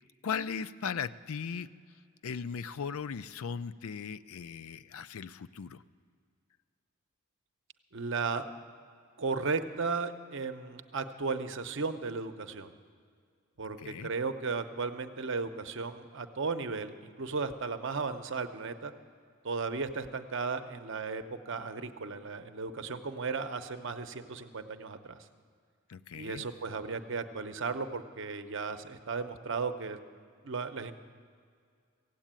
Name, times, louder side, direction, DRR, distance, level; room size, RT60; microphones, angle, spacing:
voice 1, 0.2-1.7 2.2-5.8 13.8-14.1 25.9-26.4, left 6 dB, 75° left, 13 dB, 0.4 m, -37 dB
voice 2, 7.9-8.5 9.2-12.7 13.6-18.9 19.4-25.3 26.1-30.0 30.4-30.9, right 4 dB, 55° right, 8 dB, 0.7 m, -35 dB
16.0 x 8.3 x 8.9 m, 2.2 s
head